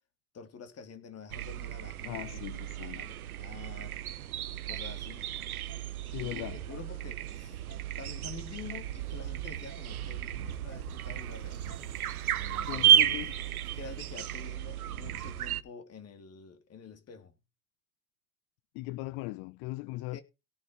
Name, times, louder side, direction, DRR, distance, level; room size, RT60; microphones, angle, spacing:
voice 1, 0.3-2.5 2.8-4.0 4.5-5.3 6.2-7.6 8.0-11.6 12.4-13.3 13.7-17.3 20.1-20.2, left 6 dB, 35° left, 3.4 m, -48 dB
sound 1, 1.3-15.6, right 10 dB, 85° right, 1.1 m, -32 dB
voice 2, 2.0-3.1 6.0-6.6 12.7-13.3 18.7-20.2, left 20 dB, 55° left, 0.8 m, -39 dB
sound 2, 4.7-4.8 5.7-5.8 6.7-6.9 7.7-7.8 8.7-8.9 9.7-9.8 10.7-10.9 11.7-11.8 12.7-12.9, right 4 dB, 85° left, 3.6 m, -53 dB
sound 3, 5.6-15.3, right 8 dB, 70° right, 2.4 m, -45 dB
17.5 x 6.5 x 4.3 m
hypercardioid pair, 85°, 42 cm